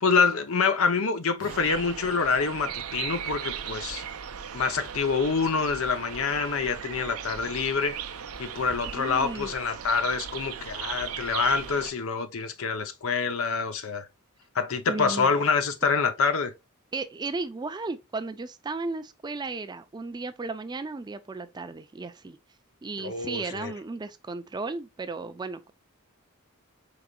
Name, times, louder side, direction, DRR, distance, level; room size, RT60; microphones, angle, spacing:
voice 1, 0.0-4.0 4.5-8.0 8.4-14.1 14.5-16.5 23.0-23.7, left 5 dB, 65° left, 0.7 m, -26 dB
Acoustic guitar, 1.4-5.1, right 3 dB, 55° right, 1.0 m, -50 dB
sound 1, 1.5-11.9, right 8 dB, 75° right, 0.6 m, -37 dB
voice 2, 8.9-9.5 14.9-15.3 16.9-22.4 22.8-25.7, right 3 dB, 20° right, 0.4 m, -35 dB
4.9 x 3.9 x 2.2 m
head